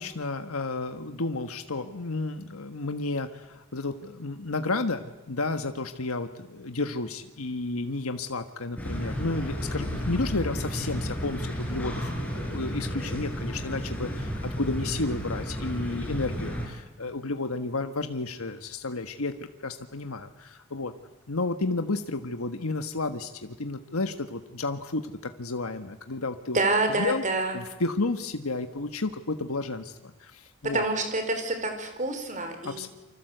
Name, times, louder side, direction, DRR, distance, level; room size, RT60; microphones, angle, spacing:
voice 1, 0.0-20.9 21.3-25.1 25.4-26.6 27.0-27.2 27.5-30.8 32.6-32.9, left 3 dB, 90° left, 7 dB, 1.4 m, -32 dB
sound 1, 8.8-16.7, equal, 5° left, 5.2 m, -32 dB
voice 2, 26.5-27.6 30.7-32.9, right 2 dB, 35° right, 7 dB, 4.5 m, -27 dB
28.5 x 25.5 x 8.0 m, 1.0 s
head